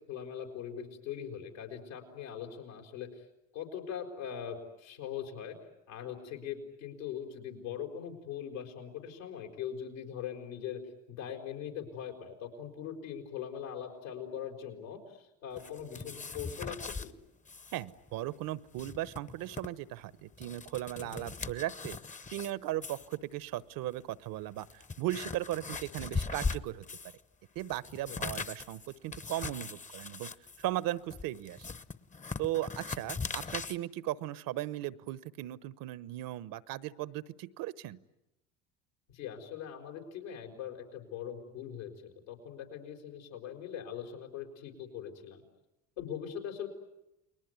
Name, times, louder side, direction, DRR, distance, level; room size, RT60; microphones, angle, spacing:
voice 1, 0.1-3.2 3.5-5.6 5.9-10.8 11.1-17.1 21.0-21.3 28.1-28.2 39.1-45.4 46.0-46.7, left 9 dB, 85° left, 1 dB, 5.3 m, -41 dB
sound 1, 15.6-17.1 17.5-17.8 18.1-18.2 18.6-19.7 20.2-22.5 22.8-23.2 23.9-24.0 24.5-27.2 27.6-33.8, left 4 dB, 20° left, 1.0 m, -40 dB
voice 2, 17.7-22.0 22.3-26.8 27.5-30.3 30.6-31.7 32.4-38.0, right 14 dB, 60° right, 18 dB, 1.1 m, -37 dB
30.0 x 21.0 x 9.5 m, 0.91 s
hypercardioid pair, 80°, 38 cm